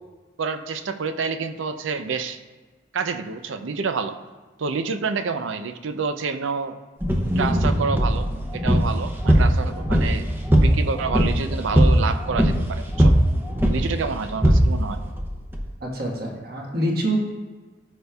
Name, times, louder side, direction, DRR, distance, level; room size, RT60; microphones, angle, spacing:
voice 1, 0.4-2.4 2.9-4.2 4.6-6.8 7.4-13.2 13.7-15.0, right 5 dB, 90° right, 9 dB, 0.5 m, -28 dB
sound 1, 7.0-15.7, equal, 10° right, 0.6 m, -20 dB
voice 2, 15.8-17.2, right 1 dB, 55° right, -1 dB, 1.4 m, -25 dB
12.5 x 5.1 x 2.3 m, 1.4 s
head